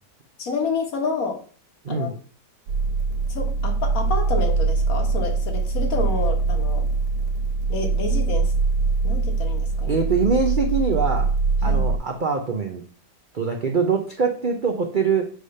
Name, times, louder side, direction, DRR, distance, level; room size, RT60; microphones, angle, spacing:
voice 1, 0.4-1.4 1.9-2.1 3.3-6.8 7.7-8.5 9.0-10.0 11.6-11.9, left 4 dB, 55° left, 4 dB, 1.8 m, -29 dB
sound 1, 2.7-12.0, right 4 dB, 80° right, 1.2 m, -23 dB
voice 2, 9.9-11.4 11.6-12.8 13.3-15.3, right 5 dB, 50° right, 2 dB, 0.6 m, -23 dB
7.8 x 3.4 x 5.4 m, 0.43 s
omnidirectional pair, 1.8 m